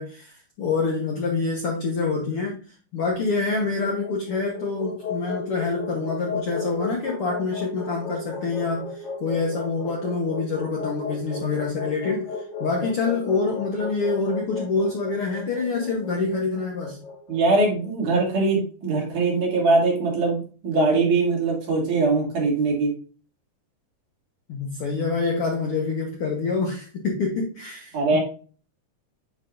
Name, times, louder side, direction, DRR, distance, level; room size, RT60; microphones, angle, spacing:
voice 1, 0.0-12.3 12.6-17.0 24.5-28.2, left 4 dB, 60° left, 1.6 m, -26 dB
sound 1, 3.4-17.7, left 4 dB, 40° left, 1.7 m, -34 dB
voice 2, 17.3-22.9 27.9-28.2, right 3 dB, 65° right, 4.1 m, -22 dB
9.4 x 4.7 x 2.5 m
omnidirectional pair, 3.9 m